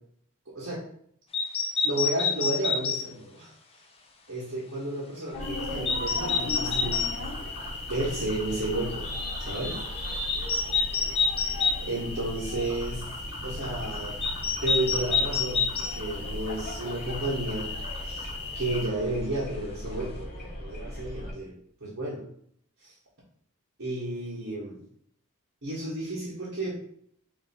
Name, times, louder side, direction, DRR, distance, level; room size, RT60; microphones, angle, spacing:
sound 1, 1.3-3.0 5.9-7.1 10.3-11.8 14.2-15.9, left 5 dB, 25° left, 0.5 m, -26 dB
voice 1, 1.8-3.5 4.3-7.1 7.9-9.1 9.4-9.8 11.8-13.0 13.4-14.2 14.6-17.7 18.0-18.3 18.5-21.5 21.8-22.2 22.8-22.9 23.8-24.8 25.6-26.8, right 1 dB, 60° right, -9 dB, 1.4 m, -32 dB
sound 2, 5.3-21.3, left 1 dB, 45° left, 1.7 m, -37 dB
sound 3, 5.4-18.9, left 3 dB, 75° left, 1.7 m, -40 dB
3.4 x 2.9 x 4.3 m, 0.65 s
head